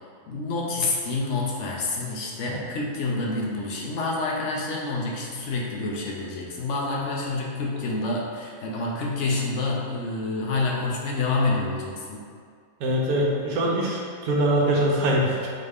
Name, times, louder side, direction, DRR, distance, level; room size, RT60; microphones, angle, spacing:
voice 1, 0.3-12.2, left 3 dB, 60° left, -3 dB, 0.8 m, -28 dB
voice 2, 12.8-15.5, right 1 dB, 70° right, -3 dB, 1.2 m, -23 dB
4.0 x 3.3 x 3.4 m, 2.1 s
omnidirectional pair, 1.7 m